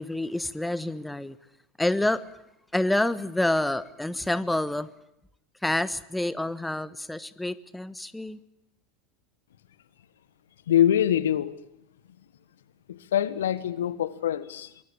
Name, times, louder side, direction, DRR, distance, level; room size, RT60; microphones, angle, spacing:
voice 1, 0.0-1.4 1.8-2.2 2.7-4.9 5.6-8.4, left 1 dB, 5° left, 17 dB, 1.2 m, -28 dB
voice 2, 10.7-11.5 12.9-14.7, left 10 dB, 70° left, 17 dB, 1.5 m, -24 dB
24.0 x 22.5 x 8.8 m, 0.79 s
figure-of-eight pair, 80°, 0 cm